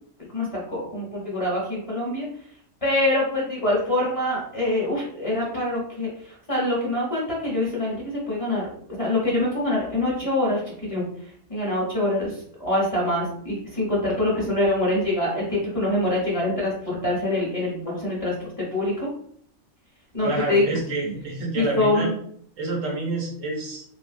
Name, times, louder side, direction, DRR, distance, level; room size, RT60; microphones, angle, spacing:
voice 1, 0.3-2.3 2.8-8.7 9.0-11.1 11.5-19.1 20.1-20.6 21.5-22.1, left 1 dB, 30° left, -6 dB, 0.8 m, -25 dB
voice 2, 20.2-22.1 22.6-23.8, right 2 dB, 70° right, -1 dB, 1.1 m, -28 dB
2.7 x 2.4 x 2.5 m, 0.63 s
omnidirectional pair, 1.4 m